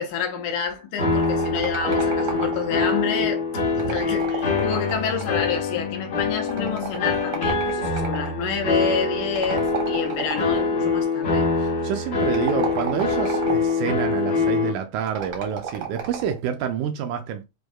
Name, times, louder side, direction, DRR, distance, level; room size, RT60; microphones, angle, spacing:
voice 1, 0.0-3.4 3.8-11.5, left 6 dB, 75° left, 2.3 m, -28 dB
sound 1, 1.0-14.7, left 4 dB, 55° left, 1.2 m, -24 dB
sound 2, 1.2-2.9 3.7-5.5 6.5-8.3 9.4-10.7 12.2-13.8 15.1-16.4, right 8 dB, 60° right, 1.2 m, -32 dB
voice 2, 11.6-17.4, right 8 dB, 80° right, 1.9 m, -28 dB
6.2 x 2.6 x 2.2 m
omnidirectional pair, 3.8 m